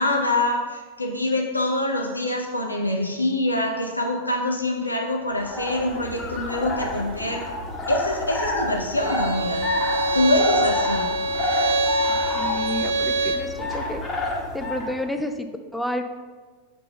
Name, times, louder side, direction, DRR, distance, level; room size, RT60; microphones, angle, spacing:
voice 1, 0.0-7.4 7.9-9.6 10.1-11.1, left 1 dB, 85° left, 2 dB, 0.6 m, -25 dB
sound 1, 5.3-15.0, left 1 dB, 20° left, 1.3 m, -29 dB
Bowed string instrument, 9.0-13.5, right 2 dB, 65° right, 0.7 m, -25 dB
voice 2, 12.3-14.0 14.5-16.0, left 1 dB, 5° left, 6 dB, 0.5 m, -30 dB
5.4 x 4.1 x 5.5 m, 1.4 s
figure-of-eight pair, 90°, 0 cm